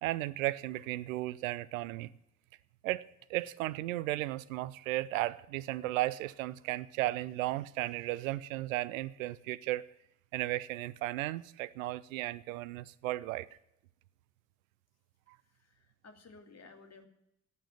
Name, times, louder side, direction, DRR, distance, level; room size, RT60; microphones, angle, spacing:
voice 1, 0.0-2.1 2.8-3.0 3.3-9.9 10.3-13.5 15.3-15.4, right 17 dB, 80° right, 0.5 m, -35 dB
voice 2, 15.4-17.1, left 3 dB, 40° left, 2.8 m, -56 dB
18.0 x 6.2 x 10.0 m
figure-of-eight pair, 40°, 39 cm